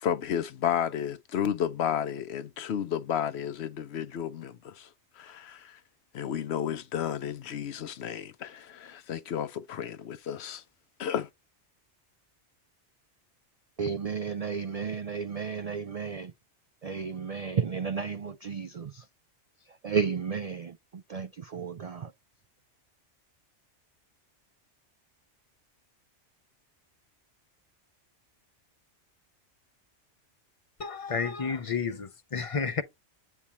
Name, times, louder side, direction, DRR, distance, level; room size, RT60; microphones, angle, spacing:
voice 1, 0.0-4.9 5.2-5.8 6.1-10.6 11.0-11.3, left 9 dB, 70° left, 0.9 m, -32 dB
voice 2, 13.8-16.3 16.8-19.1 19.6-22.1, right 6 dB, 60° right, 0.4 m, -33 dB
voice 3, 30.8-32.8, left 5 dB, 40° left, 0.5 m, -31 dB
8.5 x 3.4 x 4.2 m
omnidirectional pair, 1.2 m